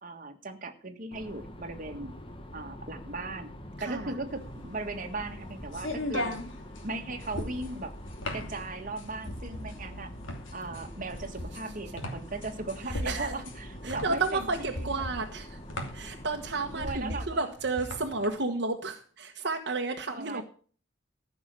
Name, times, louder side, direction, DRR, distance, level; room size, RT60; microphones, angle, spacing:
voice 1, 0.0-2.1 2.5-3.5 3.8-6.3 6.8-7.9 8.3-10.1 10.5-15.1 16.7-17.5 20.1-20.4, right 2 dB, 45° right, 5 dB, 1.7 m, -38 dB
sound 1, 1.1-16.9, equal, 25° left, 1.4 m, -45 dB
voice 2, 3.8-4.1 6.1-6.4 12.9-13.4 13.8-15.6 15.9-20.4, right 3 dB, 60° right, 3 dB, 1.4 m, -32 dB
sound 2, 4.4-18.3, left 1 dB, 80° left, 2.8 m, -38 dB
15.0 x 6.1 x 7.7 m, 0.43 s
head